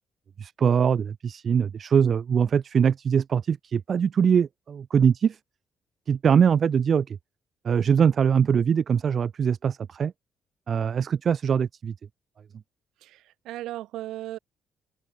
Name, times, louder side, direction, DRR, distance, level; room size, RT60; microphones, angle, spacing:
voice 1, 0.4-5.4 6.1-7.2 7.6-10.1 10.7-11.9, right 7 dB, 50° right, 2.6 m, -22 dB
voice 2, 13.0-14.4, right 15 dB, 90° right, 4.8 m, -36 dB
cardioid pair, 90°, 0 cm